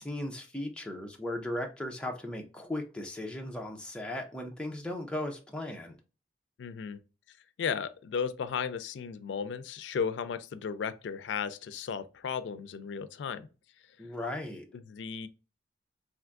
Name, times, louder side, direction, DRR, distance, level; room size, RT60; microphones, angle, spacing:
voice 1, 0.0-6.0 14.0-14.7, left 1 dB, 5° left, 0.4 m, -37 dB
voice 2, 6.6-7.0 7.6-13.5 14.0-14.1 14.7-15.3, left 6 dB, 90° left, 0.3 m, -35 dB
3.4 x 2.5 x 2.4 m
head